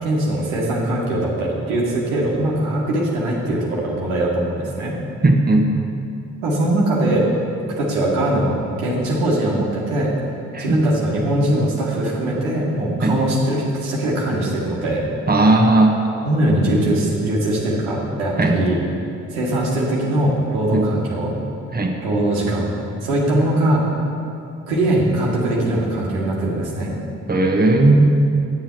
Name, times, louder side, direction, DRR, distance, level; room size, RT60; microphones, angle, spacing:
voice 1, 0.0-5.0 6.4-7.3 7.8-10.1 10.6-15.0 16.2-18.8 19.3-21.4 22.0-22.7 23.0-23.8 24.7-26.9, right 1 dB, 80° right, -4 dB, 1.4 m, -21 dB
voice 2, 5.2-5.6 10.5-10.8 13.0-13.2 15.3-16.0 18.4-18.5 20.7-20.8 21.7-21.9 27.3-28.2, right 2 dB, 25° right, 1 dB, 1.2 m, -15 dB
8.5 x 7.3 x 4.6 m, 2.5 s
hypercardioid pair, 40°, 39 cm